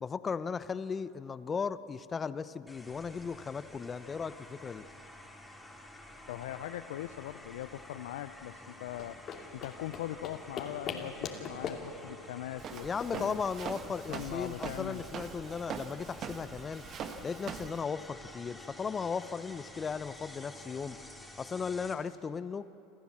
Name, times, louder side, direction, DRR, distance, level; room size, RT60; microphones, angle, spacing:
voice 1, 0.0-4.8 12.8-16.8 17.2-21.0 21.4-22.7, left 5 dB, 25° left, 15 dB, 0.8 m, -36 dB
sound 1, 2.7-21.9, left 1 dB, 5° left, 3.4 m, -51 dB
voice 2, 6.3-9.2 9.5-13.4 14.1-15.0, left 13 dB, 75° left, 10 dB, 0.5 m, -41 dB
sound 2, 8.9-14.1, left 6 dB, 45° left, 2.6 m, -42 dB
Walk footsteps, 12.6-17.8, right 6 dB, 45° right, 1.4 m, -42 dB
27.5 x 14.0 x 7.5 m, 2.9 s
hypercardioid pair, 85°, 0 cm